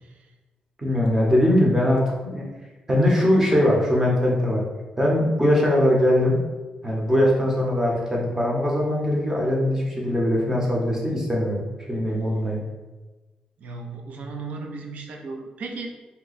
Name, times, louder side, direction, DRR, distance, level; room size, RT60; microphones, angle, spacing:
voice 1, 0.8-2.5 2.9-4.6 5.0-6.4 6.8-11.6 11.9-12.6, left 1 dB, 15° right, -3 dB, 0.8 m, -21 dB
voice 2, 13.6-15.9, right 4 dB, 65° right, 2 dB, 0.5 m, -36 dB
2.8 x 2.2 x 3.9 m, 1.2 s
wide cardioid pair, 130°, 3 cm